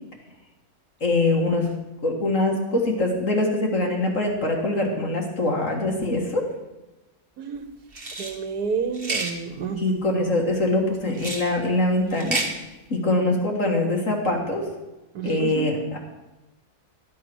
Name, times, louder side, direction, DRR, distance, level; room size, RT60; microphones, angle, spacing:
voice 1, 1.0-1.7 2.0-6.5 9.8-12.4 12.9-14.6 15.2-16.0, left 2 dB, 55° left, 1 dB, 2.1 m, -23 dB
voice 2, 7.4-7.7 8.2-10.0 15.1-15.9, right 5 dB, 90° right, 7 dB, 1.5 m, -30 dB
sound 1, 7.9-8.3 8.9-9.3 11.1-11.5 12.1-12.5, right 3 dB, 40° right, 1.8 m, -29 dB
13.5 x 8.3 x 6.2 m, 1.0 s
omnidirectional pair, 1.6 m